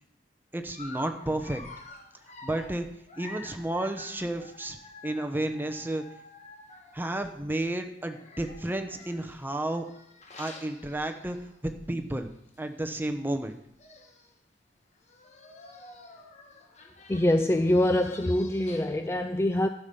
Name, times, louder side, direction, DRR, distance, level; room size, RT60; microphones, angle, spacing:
voice 1, 0.5-1.6 2.4-2.9 3.2-4.8 5.0-6.0 6.9-9.9 10.4-11.4 11.6-12.3 12.6-13.5, right 1 dB, 10° right, 6 dB, 0.8 m, -32 dB
Dog, 0.7-7.3 8.1-11.7 12.1-12.3 12.5-12.6 13.5-13.6 13.8-14.3 15.0-19.1, left 2 dB, 40° left, 1.4 m, -49 dB
voice 2, 17.1-19.7, left 1 dB, 15° left, 7 dB, 0.4 m, -24 dB
11.5 x 7.0 x 5.4 m, 0.78 s
head